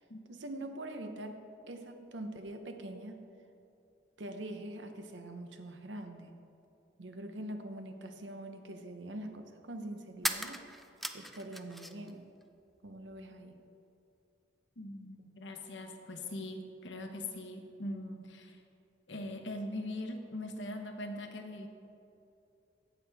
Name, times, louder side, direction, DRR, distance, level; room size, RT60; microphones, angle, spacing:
voice 1, 0.3-3.3 4.2-6.3 7.0-10.6 11.1-12.2 12.8-13.6, right 1 dB, 80° right, 6 dB, 0.9 m, -44 dB
sound 1, 7.9-8.0 10.1-12.1 12.4-13.3, equal, ahead, 0.4 m, -39 dB
voice 2, 14.8-18.6 19.1-21.7, left 1 dB, 75° left, 4 dB, 1.1 m, -41 dB
16.5 x 6.1 x 3.4 m, 2.7 s
head